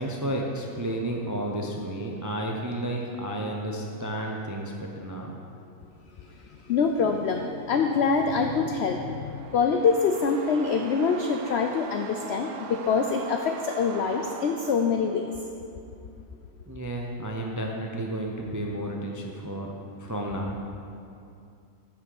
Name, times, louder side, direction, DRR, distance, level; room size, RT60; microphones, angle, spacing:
voice 1, 0.0-5.4 16.7-19.7 20.0-20.6, right 1 dB, 30° right, 0 dB, 0.3 m, -32 dB
voice 2, 6.7-9.0 9.5-15.3, left 5 dB, 65° left, 4 dB, 0.6 m, -25 dB
sound 1, 8.6-15.6, right 6 dB, 75° right, 1.1 m, -42 dB
9.6 x 6.0 x 6.6 m, 2.5 s
omnidirectional pair, 1.6 m